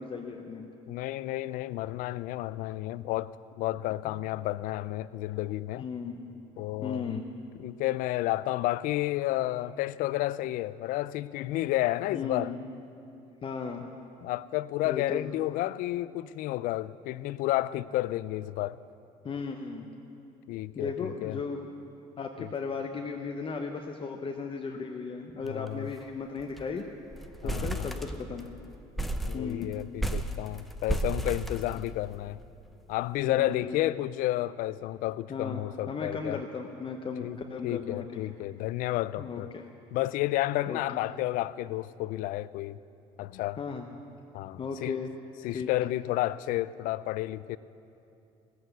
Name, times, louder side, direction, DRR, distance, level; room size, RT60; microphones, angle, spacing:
voice 1, 0.0-0.7 4.0-4.2 5.8-6.2 6.8-7.2 12.1-12.6 13.4-13.9 14.8-15.3 19.2-20.0 20.7-21.7 22.2-26.8 27.4-28.5 29.3-29.7 33.3-34.0 35.3-38.2 39.2-39.6 40.7-40.8 43.6-43.9 44.6-45.1 45.5-45.7, left 5 dB, 35° left, 0.9 m, -36 dB
voice 2, 0.9-5.8 6.6-7.2 7.6-12.5 14.2-18.8 20.5-21.4 22.4-22.5 25.5-25.9 27.4-27.9 29.2-32.4 32.9-36.4 37.2-37.4 37.6-39.5 39.9-42.8 43.2-43.6 44.3-45.0 45.4-47.6, left 16 dB, 70° left, 0.4 m, -31 dB
sound 1, 25.5-25.7 26.0-26.1 26.4-26.8 27.1-28.5 29.0-32.3, right 1 dB, ahead, 0.7 m, -33 dB
17.0 x 7.9 x 8.1 m
supercardioid pair, 90°, 14 cm